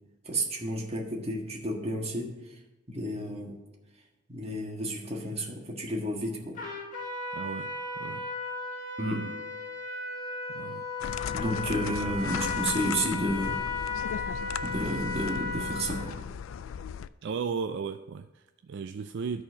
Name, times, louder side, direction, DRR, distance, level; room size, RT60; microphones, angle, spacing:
voice 1, 0.2-2.3 2.9-3.6 4.3-6.6 9.0-9.3 11.3-13.6 14.6-16.2, right 1 dB, 30° right, 0 dB, 1.6 m, -31 dB
Trumpet, 6.5-16.1, left 3 dB, 45° left, 2.3 m, -35 dB
voice 2, 7.3-8.3 10.5-10.9 17.2-19.4, right 5 dB, 65° right, 7 dB, 0.4 m, -35 dB
sound 1, 11.0-17.1, left 7 dB, 85° left, 0.3 m, -37 dB
13.0 x 4.3 x 6.4 m, 1.1 s
head